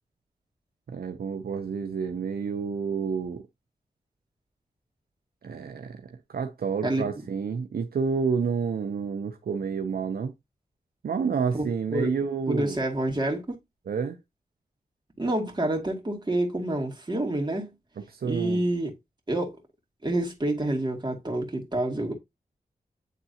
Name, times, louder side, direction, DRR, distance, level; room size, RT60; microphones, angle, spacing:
voice 1, 0.9-3.4 5.4-6.0 6.3-10.3 11.0-12.8 13.9-14.2 18.2-18.6, right 5 dB, 80° right, 0.7 m, -29 dB
voice 2, 11.5-12.1 12.5-13.6 15.2-17.7 18.2-18.9 19.3-19.6 20.0-22.1, right 1 dB, 30° right, 2.3 m, -28 dB
9.2 x 3.7 x 2.8 m
cardioid pair, 55°, 15 cm